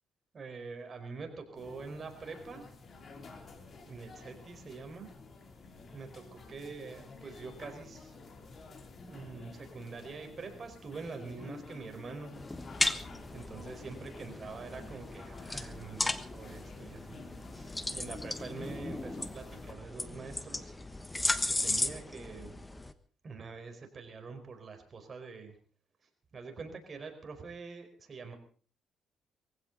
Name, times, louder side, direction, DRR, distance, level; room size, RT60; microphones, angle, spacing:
voice 1, 0.3-2.6 3.8-5.1 5.9-8.1 8.7-12.7 13.3-17.2 17.5-20.7 21.5-22.6 23.2-25.5 26.3-28.4, right 4 dB, 40° right, 5 dB, 4.6 m, -45 dB
sound 1, 1.5-19.7, left 3 dB, 45° left, 3.2 m, -50 dB
sound 2, 12.3-22.9, left 2 dB, 15° left, 1.2 m, -36 dB
22.0 x 16.0 x 4.0 m, 0.40 s
cardioid pair, 90°, 0 cm